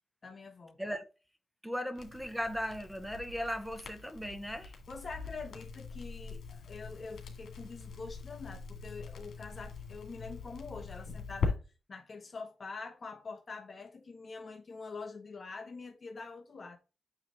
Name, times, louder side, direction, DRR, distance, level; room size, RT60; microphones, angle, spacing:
voice 1, 0.2-0.8 4.9-11.6 11.9-16.8, left 4 dB, 30° left, 1.0 m, -45 dB
voice 2, 0.8-1.1 1.6-4.7, equal, ahead, 0.7 m, -37 dB
Crackle, 1.9-11.5, left 4 dB, 70° left, 2.1 m, -41 dB
8.6 x 3.2 x 3.8 m
wide cardioid pair, 170°, 0 cm